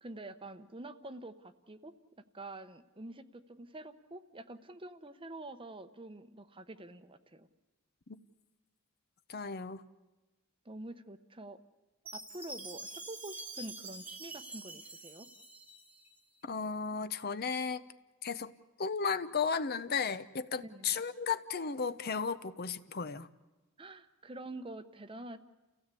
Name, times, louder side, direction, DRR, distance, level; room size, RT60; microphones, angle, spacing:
voice 1, 0.0-1.9 2.3-7.5 10.6-11.6 12.1-15.3 20.6-21.0 23.8-25.4, right 2 dB, 25° right, 11 dB, 0.9 m, -47 dB
voice 2, 9.3-9.8 16.4-17.8 18.2-18.5 18.8-23.3, left 5 dB, 45° left, 13 dB, 0.7 m, -34 dB
Chime, 12.1-16.2, right 2 dB, 5° right, 1.2 m, -46 dB
29.5 x 16.5 x 8.3 m, 1.1 s
head